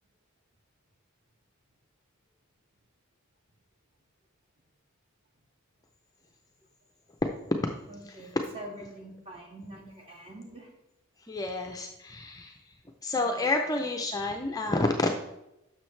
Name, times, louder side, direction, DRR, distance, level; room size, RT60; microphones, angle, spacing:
voice 1, 7.9-10.7 13.3-13.5, right 1 dB, 25° right, -1 dB, 1.9 m, -45 dB
voice 2, 11.3-12.6 13.0-15.1, left 2 dB, 15° left, 3 dB, 0.5 m, -29 dB
10.5 x 6.3 x 3.2 m, 0.88 s
head